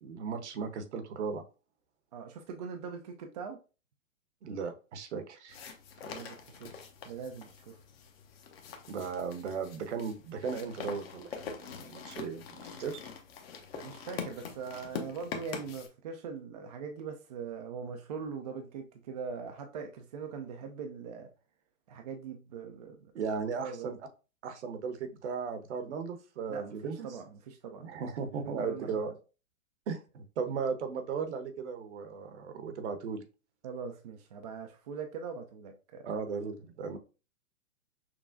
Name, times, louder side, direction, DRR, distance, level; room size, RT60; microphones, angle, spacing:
voice 1, 0.0-1.4 4.4-5.6 8.9-13.0 23.1-24.0 24.4-27.1 27.8-29.1 29.9-33.2 36.0-37.0, right 5 dB, 55° right, 0.9 m, -36 dB
voice 2, 2.1-3.6 6.0-7.8 13.7-21.3 21.9-23.1 23.6-24.0 26.5-27.9 28.4-28.9 33.6-36.1, right 6 dB, 30° right, 0.4 m, -42 dB
sound 1, 5.5-15.9, left 6 dB, 45° left, 0.8 m, -44 dB
6.0 x 2.3 x 2.5 m
hypercardioid pair, 120°, 41 cm